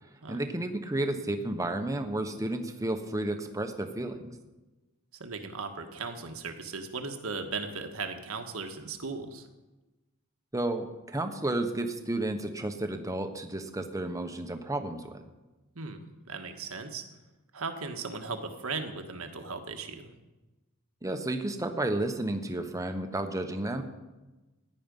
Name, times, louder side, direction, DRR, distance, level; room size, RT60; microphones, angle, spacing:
voice 1, 0.3-4.3 10.5-15.2 21.0-23.8, right 1 dB, 15° right, 7 dB, 1.0 m, -32 dB
voice 2, 5.2-9.5 15.7-17.0 17.5-20.1, right 4 dB, 70° right, 6 dB, 1.4 m, -37 dB
15.0 x 10.5 x 5.4 m, 1.1 s
head